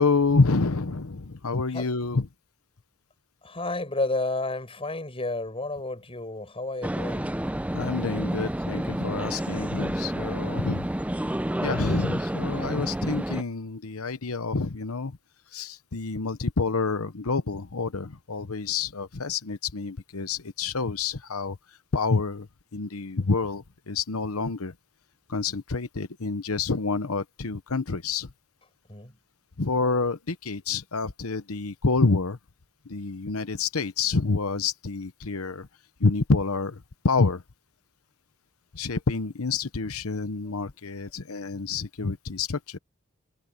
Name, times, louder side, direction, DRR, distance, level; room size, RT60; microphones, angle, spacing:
voice 1, 0.0-2.3 7.7-10.9 11.6-15.2 15.5-21.6 21.9-24.7 25.3-28.3 29.6-32.4 32.9-35.7 36.0-37.4 38.7-42.8, left 4 dB, 70° left, 1.0 m, -28 dB
voice 2, 3.4-7.4 28.9-29.2 40.7-41.1, left 2 dB, 25° left, 7.0 m, -31 dB
sound 1, 6.8-13.4, right 1 dB, 5° right, 0.5 m, -30 dB
head